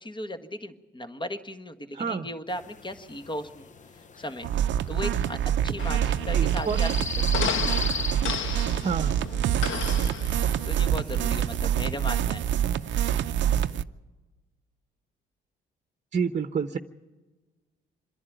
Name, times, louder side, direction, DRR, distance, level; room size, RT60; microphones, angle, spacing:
voice 1, 0.0-3.7 3.9-4.5 4.9-5.4 5.6-6.9 7.4-7.6 10.6-12.4, left 1 dB, 25° left, 8 dB, 1.5 m, -36 dB
voice 2, 1.9-2.3 6.3-6.8 8.8-9.1 16.1-16.8, right 6 dB, 40° right, 8 dB, 1.0 m, -28 dB
sound 1, 2.5-13.8, left 5 dB, 40° left, 0.8 m, -40 dB
sound 2, 4.4-13.8, right 10 dB, 70° right, 0.6 m, -26 dB
sound 3, 5.8-11.0, left 7 dB, 80° left, 1.3 m, -34 dB
26.5 x 11.0 x 9.2 m, 1.2 s
cardioid pair, 90°, 20 cm